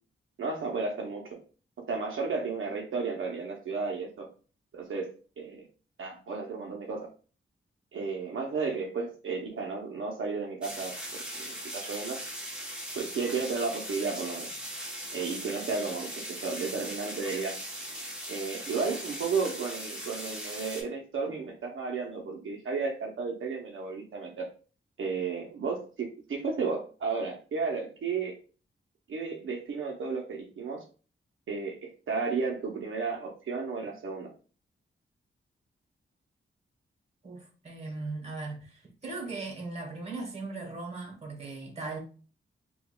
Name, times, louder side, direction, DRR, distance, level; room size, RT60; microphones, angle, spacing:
voice 1, 0.4-1.4 1.9-4.3 4.7-5.1 5.4-5.7 6.0-7.1 7.9-12.2 12.9-14.5 15.1-17.6 18.3-24.5 25.0-28.4 29.1-30.8 31.5-34.3, right 4 dB, 75° right, 0.6 m, -33 dB
sound 1, 10.6-20.8, equal, 5° right, 0.9 m, -39 dB
voice 2, 37.2-42.0, right 3 dB, 30° right, 1.1 m, -38 dB
4.7 x 2.2 x 2.2 m
wide cardioid pair, 120°, 21 cm